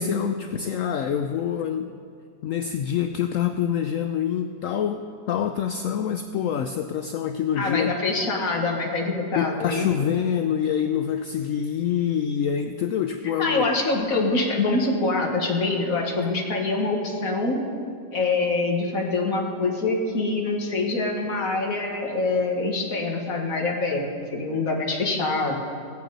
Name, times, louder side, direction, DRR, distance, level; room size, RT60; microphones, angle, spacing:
voice 1, 0.0-2.0 2.4-7.9 9.3-13.7, left 8 dB, 70° left, 7 dB, 0.7 m, -26 dB
voice 2, 7.6-10.1 13.4-17.6 18.1-24.1 24.3-25.5, left 3 dB, 55° left, 1 dB, 1.9 m, -25 dB
22.5 x 7.7 x 4.0 m, 2.4 s
omnidirectional pair, 1.8 m